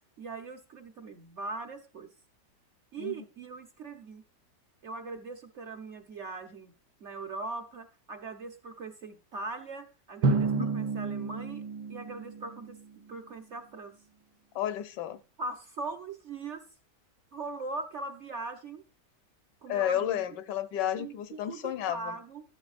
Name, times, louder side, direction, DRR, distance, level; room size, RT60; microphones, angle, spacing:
voice 1, 0.2-2.1 2.9-4.2 4.8-6.7 7.0-11.6 11.9-12.8 13.1-14.0 15.4-16.7 17.3-18.8 19.6-20.2 21.0-22.4, right 3 dB, 55° right, 5 dB, 0.9 m, -40 dB
Drum, 10.2-12.9, right 4 dB, 75° right, 1.4 m, -30 dB
voice 2, 14.5-15.2 19.7-22.1, left 11 dB, 80° left, 12 dB, 1.3 m, -32 dB
12.0 x 11.0 x 2.5 m, 0.33 s
omnidirectional pair, 1.9 m